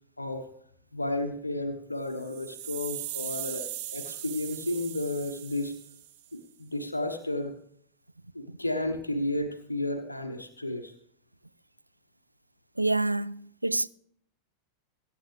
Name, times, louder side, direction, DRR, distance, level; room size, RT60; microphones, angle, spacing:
voice 1, 0.2-0.5 0.9-5.7 6.3-7.5 8.3-10.9, left 1 dB, 85° left, 1.0 m, -32 dB
sound 1, 2.1-6.3, right 12 dB, 45° right, 1.2 m, -39 dB
voice 2, 12.8-13.9, right 2 dB, 85° right, 0.4 m, -27 dB
21.5 x 9.2 x 3.3 m
figure-of-eight pair, 90°, 0 cm